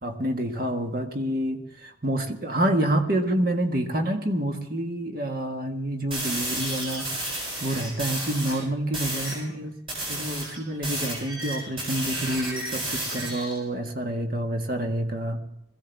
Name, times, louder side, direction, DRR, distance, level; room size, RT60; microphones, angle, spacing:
voice 1, 0.0-7.3 7.6-9.7 10.1-15.4, right 1 dB, 50° right, 4 dB, 1.7 m, -28 dB
sound 1, 6.1-8.6 8.9-9.4 9.9-13.6, right 1 dB, 25° right, 7.7 m, -32 dB
21.5 x 15.5 x 3.5 m, 0.84 s
head